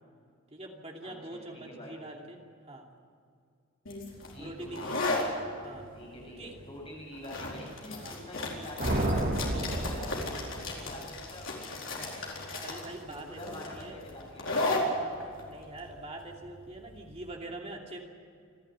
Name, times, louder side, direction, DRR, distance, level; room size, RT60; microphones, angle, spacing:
voice 1, 0.5-2.4 2.6-2.9 4.4-5.1 5.6-5.9 6.4-6.5 7.9-8.1 10.9-11.1 12.5-14.0 14.9-18.0, right 2 dB, 30° right, 0 dB, 2.8 m, -44 dB
voice 2, 1.0-2.0 4.3-5.2 5.9-12.3 13.0-14.5, left 1 dB, 25° left, -2 dB, 6.9 m, -46 dB
sound 1, 3.9-17.3, left 2 dB, 60° left, 4.4 m, -36 dB
sound 2, 8.8-10.8, right 1 dB, 45° right, 2.9 m, -30 dB
28.5 x 11.5 x 9.8 m, 2.3 s
head